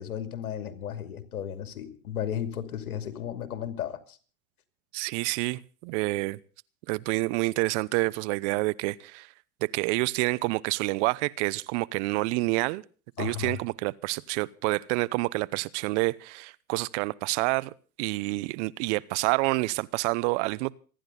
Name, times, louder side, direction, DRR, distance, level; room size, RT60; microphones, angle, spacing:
voice 1, 0.0-4.2 13.2-13.6, left 9 dB, 80° left, 2.7 m, -34 dB
voice 2, 4.9-6.4 6.9-9.3 9.6-12.8 13.2-17.7 18.0-20.7, right 23 dB, 55° right, 0.9 m, -28 dB
27.0 x 10.5 x 3.9 m
hypercardioid pair, 105°, 43 cm